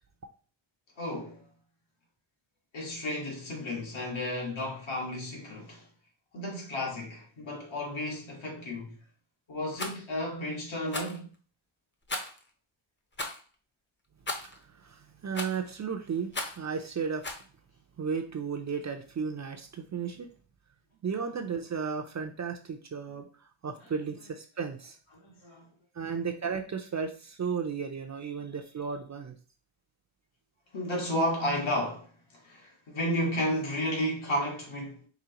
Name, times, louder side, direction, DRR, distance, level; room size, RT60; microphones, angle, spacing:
voice 1, 1.0-1.5 2.7-5.9 6.3-9.0 9.5-11.3 25.1-25.7 30.7-35.1, equal, 65° left, 1.6 m, -33 dB
Rattle, 9.7-10.0 10.9-11.2 12.1-12.4 13.1-13.4 14.3-14.6 15.3-15.7 16.3-16.7 17.2-17.5, left 2 dB, 25° left, 0.7 m, -36 dB
voice 2, 14.5-17.3 18.0-20.3 21.0-25.0 25.9-29.3, right 6 dB, 35° right, 0.4 m, -34 dB
4.9 x 3.3 x 2.9 m
wide cardioid pair, 175°, 49 cm